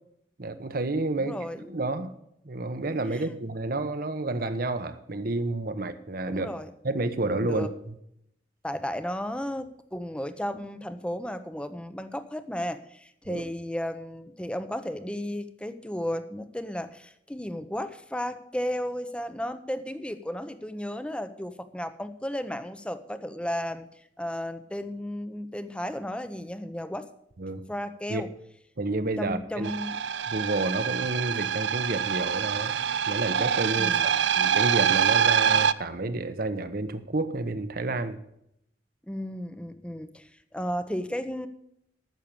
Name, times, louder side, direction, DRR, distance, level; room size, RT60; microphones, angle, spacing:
voice 1, 0.4-1.4 1.7-2.2 2.4-6.5 6.8-7.7 13.3-13.4 27.4-27.6 28.1-28.2 28.8-29.7 30.3-32.8 33.1-38.2, right 2 dB, 55° right, 10 dB, 1.0 m, -30 dB
voice 2, 1.2-1.7 3.1-3.3 6.3-6.7 7.4-7.7 8.6-23.9 24.2-27.1 27.7-28.3 29.2-30.0 33.8-34.2 39.0-41.5, equal, 5° left, 10 dB, 0.7 m, -34 dB
sound 1, 29.6-35.7, right 8 dB, 85° right, 0.5 m, -25 dB
13.5 x 6.6 x 7.1 m, 0.77 s
head